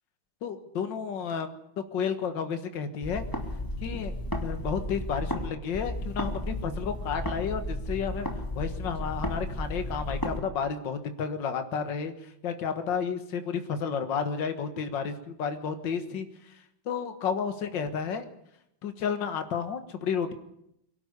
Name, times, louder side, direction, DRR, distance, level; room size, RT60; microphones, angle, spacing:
voice 1, 0.4-1.6 1.9-3.3 3.8-4.1 4.4-8.3 8.6-16.6 16.9-18.3 18.8-20.3, left 6 dB, 65° left, 9 dB, 2.1 m, -32 dB
sound 1, 3.0-5.5 5.7-10.4, left 1 dB, 10° left, 2.7 m, -33 dB
23.5 x 12.0 x 9.7 m, 0.78 s
omnidirectional pair, 2.2 m